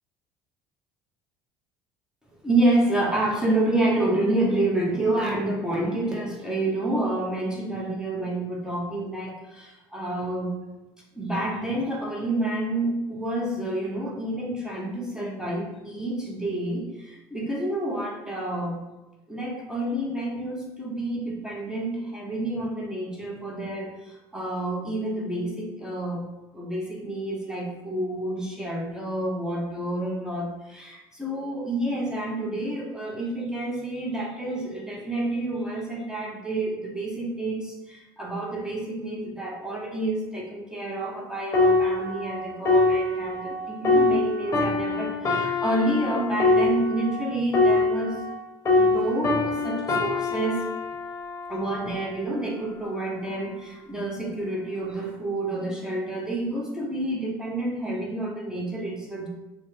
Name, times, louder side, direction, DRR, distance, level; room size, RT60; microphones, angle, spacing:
voice 1, 2.4-10.5 11.1-18.8 19.3-26.2 26.5-48.3 48.7-50.6 51.5-59.3, right 1 dB, 5° right, -3 dB, 0.9 m, -29 dB
sound 1, 41.5-48.4 48.7-52.2 52.9-53.1, left 3 dB, 30° left, 1.0 m, -24 dB
2.9 x 2.9 x 3.3 m, 1.1 s
supercardioid pair, 80°, 11 cm